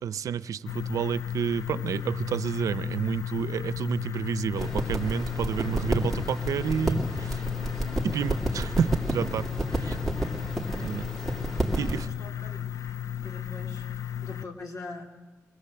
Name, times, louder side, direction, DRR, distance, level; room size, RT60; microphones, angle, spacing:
voice 1, 0.0-7.4 8.0-9.5 9.7-10.0 10.8-11.1 11.8-12.1, right 8 dB, 80° right, 16 dB, 0.7 m, -30 dB
sound 1, 0.7-14.5, left 10 dB, 70° left, 0.7 m, -34 dB
sound 2, 4.6-12.0, right 1 dB, 5° left, 2.6 m, -31 dB
voice 2, 9.7-10.2 10.7-11.3 11.6-12.8 13.2-13.8 14.2-15.0, left 3 dB, 90° left, 3 dB, 3.2 m, -44 dB
23.5 x 20.0 x 7.9 m, 1.3 s
wide cardioid pair, 170°, 6 cm